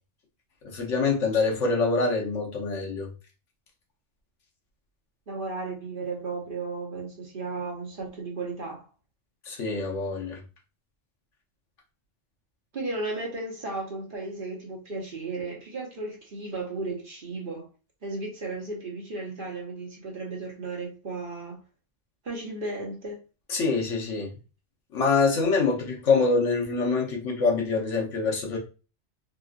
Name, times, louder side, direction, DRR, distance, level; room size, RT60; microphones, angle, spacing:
voice 1, 0.6-3.1 9.5-10.4 23.5-24.3 24.9-28.6, left 4 dB, 75° left, 1.2 m, -25 dB
voice 2, 5.3-8.9 12.7-17.7 18.0-21.6 22.2-23.2, right 3 dB, 45° right, 1.1 m, -34 dB
3.7 x 2.3 x 2.4 m
omnidirectional pair, 1.3 m